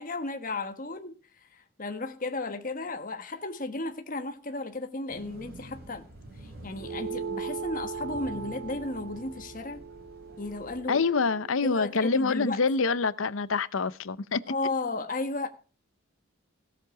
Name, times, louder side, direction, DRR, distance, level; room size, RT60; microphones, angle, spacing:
voice 1, 0.0-6.1 6.4-9.8 10.4-11.0 11.6-12.6 14.5-15.5, left 2 dB, 40° left, 1.3 m, -34 dB
sound 1, 5.1-10.8, right 1 dB, 50° right, 7.2 m, -48 dB
sound 2, 6.8-11.6, right 5 dB, 85° right, 0.9 m, -39 dB
voice 2, 10.9-14.4, left 4 dB, 75° left, 0.7 m, -26 dB
17.0 x 7.6 x 4.9 m
head